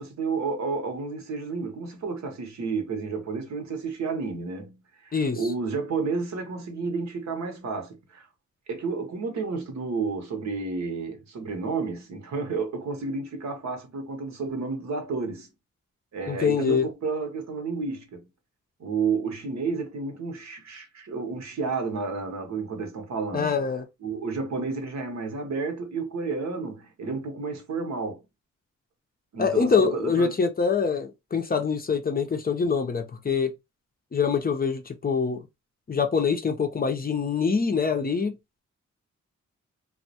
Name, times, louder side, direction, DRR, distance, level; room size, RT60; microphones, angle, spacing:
voice 1, 0.0-4.8 5.0-8.3 8.7-15.5 16.1-18.3 18.8-23.5 24.0-28.2 29.3-30.3, right 4 dB, 65° right, 0.8 m, -31 dB
voice 2, 5.1-5.4 16.3-16.9 23.3-23.8 29.4-33.5 34.1-35.4 35.9-38.4, left 5 dB, 30° left, 0.5 m, -24 dB
2.2 x 2.1 x 2.7 m
cardioid pair, 60°, 30 cm